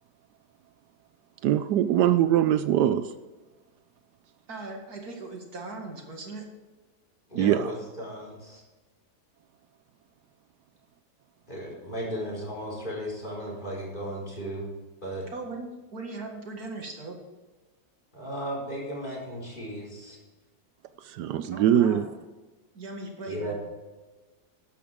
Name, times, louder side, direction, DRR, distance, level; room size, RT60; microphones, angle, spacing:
voice 1, 1.4-3.1 7.3-7.7 21.0-22.0, right 11 dB, 80° right, 11 dB, 1.2 m, -22 dB
voice 2, 4.5-6.5 15.3-17.2 21.5-22.1 22.7-23.5, right 3 dB, 65° right, 2 dB, 2.4 m, -39 dB
voice 3, 7.3-8.6 11.5-14.7 15.0-15.2 18.1-20.2 23.3-23.5, equal, 25° left, -4 dB, 4.8 m, -35 dB
14.0 x 11.5 x 3.6 m, 1.2 s
omnidirectional pair, 1.8 m